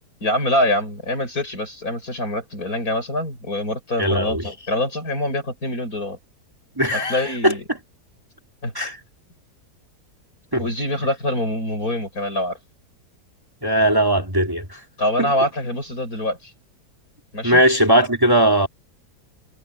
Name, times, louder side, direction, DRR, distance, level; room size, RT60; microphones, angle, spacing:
voice 1, 0.2-6.2 6.9-7.6 8.6-8.7 10.6-12.6 15.0-16.5 17.3-17.6, left 1 dB, 60° left, 8.2 m, -24 dB
voice 2, 4.0-4.4 6.8-7.5 8.7-9.0 10.5-10.6 13.6-14.6 15.2-15.3 17.4-18.7, right 1 dB, 15° right, 3.0 m, -18 dB
omnidirectional pair, 1.7 m